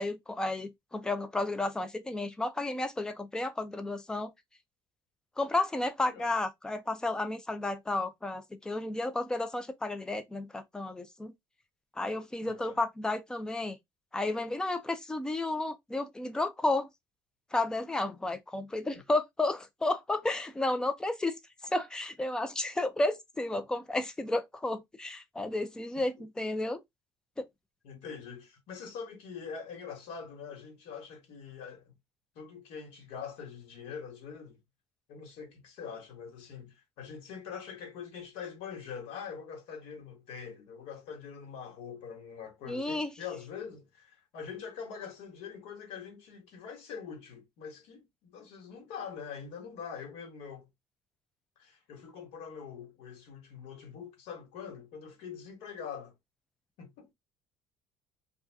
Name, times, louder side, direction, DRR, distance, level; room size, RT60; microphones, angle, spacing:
voice 1, 0.0-4.3 5.4-11.3 12.0-13.8 14.1-16.9 17.5-21.3 21.7-26.8 27.4-27.5 42.7-43.1, left 2 dB, 5° left, 0.4 m, -32 dB
voice 2, 12.4-12.8 18.9-19.0 27.8-31.9 32.3-34.6 35.1-50.7 51.6-56.1 56.8-57.1, left 6 dB, 90° left, 1.3 m, -44 dB
2.6 x 2.4 x 3.3 m
cardioid pair, 165°, 10 cm